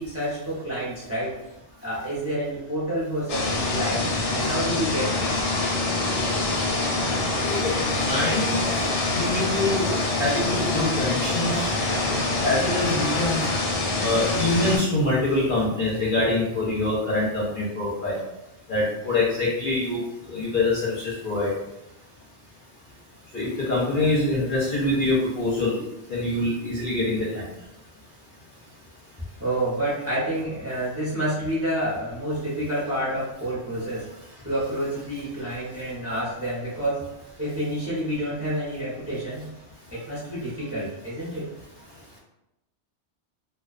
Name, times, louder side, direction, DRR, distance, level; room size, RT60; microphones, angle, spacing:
voice 1, 0.0-1.4 1.8-5.4 29.4-34.0 34.4-37.0 37.4-39.4 39.9-41.4, right 1 dB, 15° right, -8 dB, 0.6 m, -29 dB
sound 1, 3.3-14.8, left 2 dB, 85° left, 0.9 m, -25 dB
voice 2, 7.4-7.7 8.0-8.6 9.1-9.8 10.2-11.6 12.4-13.4 14.0-18.2 18.7-20.0 20.3-21.5 23.3-25.8 26.1-27.4, left 2 dB, 55° left, -6 dB, 0.7 m, -24 dB
2.3 x 2.3 x 2.4 m, 0.89 s
omnidirectional pair, 1.2 m